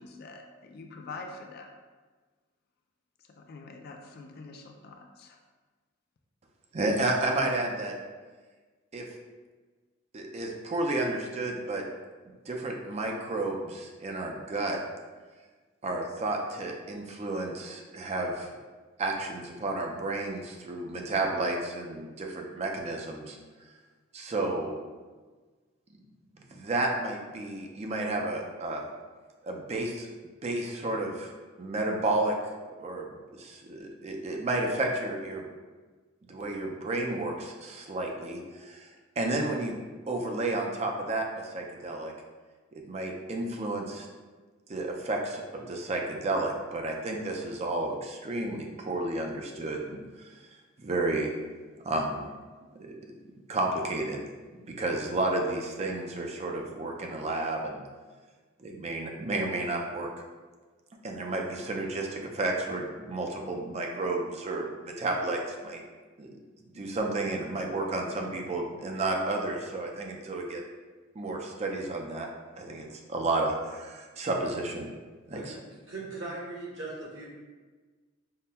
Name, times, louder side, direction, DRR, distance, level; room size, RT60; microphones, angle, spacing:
voice 1, 0.0-1.7 3.3-5.4, left 3 dB, 50° left, 3 dB, 0.4 m, -45 dB
voice 2, 6.7-7.9 8.9-9.0 10.1-11.8 12.5-14.8 15.8-18.5 19.0-23.4 24.1-24.8 26.5-28.9 29.4-30.1 30.4-31.3 31.6-32.4 32.8-35.5 36.2-38.9 39.2-39.8 40.1-42.1 42.7-44.1 44.7-50.4 50.8-51.3 51.8-52.3 52.7-52.9 53.5-54.2 54.7-57.8 58.6-60.1 61.0-65.8 66.2-66.3 66.7-70.6 71.2-72.3 72.6-74.9 75.3-75.4, right 2 dB, 30° right, 1 dB, 0.4 m, -31 dB
voice 3, 75.3-77.3, right 2 dB, 65° right, -6 dB, 1.2 m, -39 dB
5.5 x 2.1 x 2.2 m, 1.4 s
head